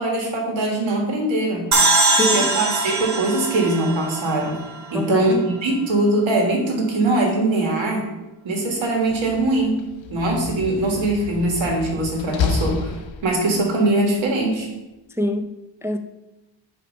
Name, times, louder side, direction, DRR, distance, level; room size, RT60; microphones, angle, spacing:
voice 1, 0.0-1.7 2.2-4.6 4.9-8.1 8.4-9.8 10.1-13.0 13.2-14.7, right 2 dB, 80° right, 1 dB, 1.6 m, -21 dB
sound 1, 1.7-5.0, right 2 dB, 40° right, 1.0 m, -21 dB
voice 2, 2.1-2.5 4.9-5.5 15.1-16.0, equal, 5° right, 5 dB, 0.3 m, -25 dB
Slam, 8.9-13.6, left 6 dB, 80° left, 0.6 m, -30 dB
7.3 x 3.0 x 5.2 m, 1.0 s
cardioid pair, 70°, 46 cm